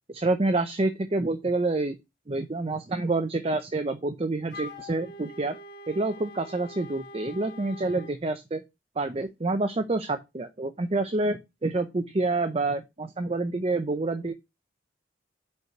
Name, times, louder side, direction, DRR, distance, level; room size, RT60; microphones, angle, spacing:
voice 1, 0.1-2.0 2.3-5.6 5.9-8.6 9.0-14.3, right 2 dB, 30° right, 8 dB, 0.6 m, -28 dB
Wind instrument woodwind instrument, 4.5-8.2, left 1 dB, 60° left, 1.6 m, -44 dB
5.4 x 4.6 x 5.9 m, 0.23 s
head